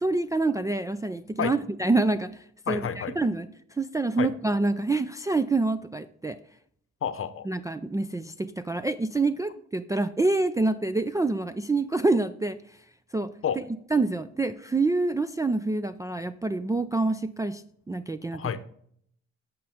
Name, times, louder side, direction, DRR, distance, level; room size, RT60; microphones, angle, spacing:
voice 1, 0.0-3.5 3.8-6.4 7.5-12.6 13.1-13.3 13.9-17.6 17.9-18.4, right 2 dB, 10° right, 8 dB, 0.3 m, -26 dB
voice 2, 2.7-3.1 4.2-4.3 7.0-7.5 13.4-13.6 18.3-18.7, left 8 dB, 45° left, 12 dB, 0.8 m, -29 dB
8.6 x 6.5 x 3.5 m, 0.63 s
cardioid pair, 90°, 30 cm